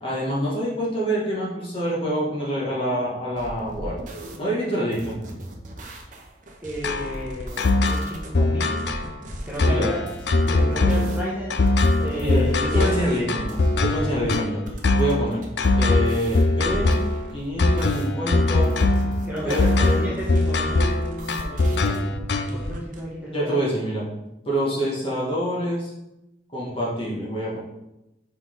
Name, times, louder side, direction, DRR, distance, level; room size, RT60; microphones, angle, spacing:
voice 1, 0.0-4.0 4.4-5.2 9.6-9.9 12.2-14.6 14.9-15.5 15.8-16.9 17.3-18.7 19.4-20.0 23.3-24.0 24.5-25.9 26.5-27.6, equal, 30° left, -6 dB, 2.0 m, -26 dB
sound 1, 3.4-4.4 4.9-8.3 8.8-9.7 10.1-13.2 13.5-14.3 14.7-18.1 18.6-22.0 22.5-23.0, right 1 dB, 45° right, 0.9 m, -38 dB
voice 2, 6.6-8.9 9.4-10.0 10.4-13.2 19.2-22.2 22.4-23.5, equal, 10° right, -7 dB, 1.6 m, -33 dB
sound 2, 6.8-22.7, left 2 dB, 65° left, 0.5 m, -21 dB
6.1 x 5.0 x 3.7 m, 0.91 s
head